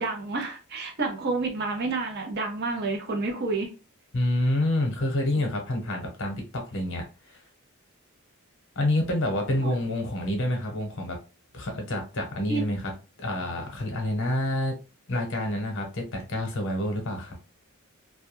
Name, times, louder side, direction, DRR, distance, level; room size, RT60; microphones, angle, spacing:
voice 1, 0.0-3.7 9.6-9.7 12.5-12.6, right 3 dB, 50° right, 2 dB, 0.6 m, -29 dB
voice 2, 4.1-7.4 8.8-11.2 11.5-12.9 13.2-14.8 15.1-17.3, left 1 dB, 60° left, 2 dB, 0.8 m, -28 dB
2.2 x 2.2 x 3.0 m, 0.32 s
head